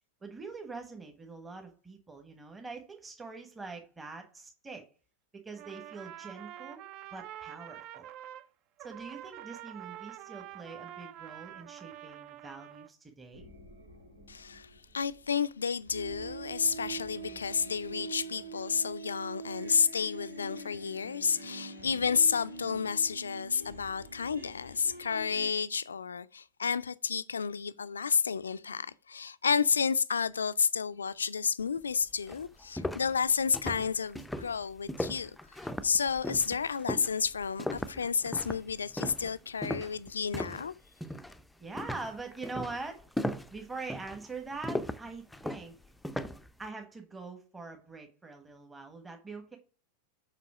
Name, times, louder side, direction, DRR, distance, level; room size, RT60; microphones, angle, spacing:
voice 1, 0.2-4.8 5.3-6.8 7.1-8.1 8.8-13.5 41.6-43.1 43.5-45.8 46.6-49.6, right 3 dB, 10° right, 1.3 m, -43 dB
Trumpet, 5.5-8.5 8.8-12.9, right 12 dB, 40° right, 0.5 m, -46 dB
sound 1, 13.3-15.3 15.9-25.5, right 3 dB, 80° right, 3.2 m, -45 dB
voice 2, 14.3-35.4 35.8-40.7, left 6 dB, 70° left, 0.4 m, -31 dB
sound 2, 31.8-31.9 32.3-40.7 41.0-41.4 41.8-46.5, left 1 dB, 5° left, 0.5 m, -37 dB
7.5 x 5.2 x 4.8 m
figure-of-eight pair, 90°, 0 cm